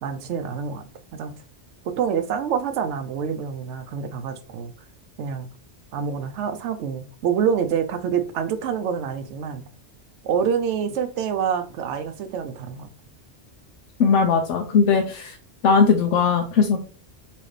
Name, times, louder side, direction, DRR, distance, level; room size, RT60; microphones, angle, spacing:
voice 1, 0.0-1.3 1.8-4.7 5.2-5.5 5.9-9.7 10.2-12.9, right 7 dB, 90° right, 0.9 m, -26 dB
voice 2, 14.0-15.4 15.6-16.8, left 5 dB, 85° left, 0.9 m, -19 dB
4.2 x 2.8 x 3.2 m
omnidirectional pair, 1.2 m